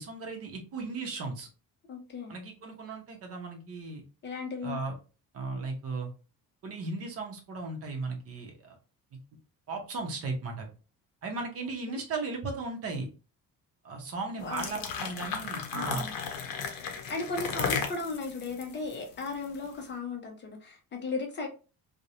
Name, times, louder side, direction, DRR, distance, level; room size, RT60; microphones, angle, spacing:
voice 1, 0.0-1.5 2.3-4.0 4.6-4.9 5.3-6.1 6.6-8.8 9.7-10.7 11.2-13.1 13.8-16.0, right 3 dB, 45° right, 3 dB, 0.7 m, -36 dB
voice 2, 1.9-2.3 4.2-4.8 11.6-12.0 14.4-15.0 15.7-16.1 17.1-21.5, left 3 dB, 35° left, 3 dB, 0.4 m, -36 dB
sound 1, 14.4-19.7, left 6 dB, 75° left, 0.6 m, -35 dB
2.4 x 2.0 x 2.8 m, 0.34 s
cardioid pair, 160°, 34 cm